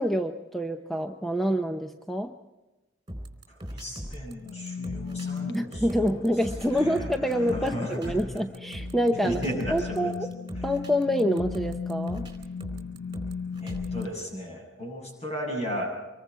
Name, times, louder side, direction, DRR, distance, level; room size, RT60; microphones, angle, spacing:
voice 1, 0.0-2.3 5.5-9.4 9.7-10.1 10.6-12.3, equal, ahead, 4 dB, 0.7 m, -27 dB
sound 1, 3.1-14.2, equal, 25° right, 4.0 m, -39 dB
voice 2, 3.5-6.2 6.7-8.2 9.2-10.1 13.6-16.0, equal, 35° left, 1 dB, 7.4 m, -35 dB
sound 2, 4.4-14.1, left 5 dB, 70° left, 1.0 m, -37 dB
26.0 x 22.5 x 4.7 m, 1.1 s
head